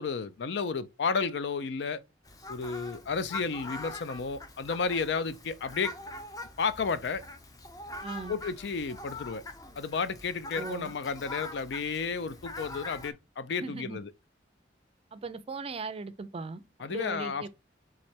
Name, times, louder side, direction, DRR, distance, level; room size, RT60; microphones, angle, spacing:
voice 1, 0.0-2.0 2.5-5.9 6.6-7.2 8.3-9.4 9.8-14.1 16.8-17.5, left 5 dB, 65° left, 0.4 m, -32 dB
Fowl, 2.2-13.1, left 2 dB, 20° left, 0.6 m, -43 dB
voice 2, 8.0-8.4 10.5-10.9 13.6-14.0 15.1-16.6 16.9-17.5, right 4 dB, 35° right, 0.4 m, -38 dB
3.7 x 3.2 x 4.3 m
head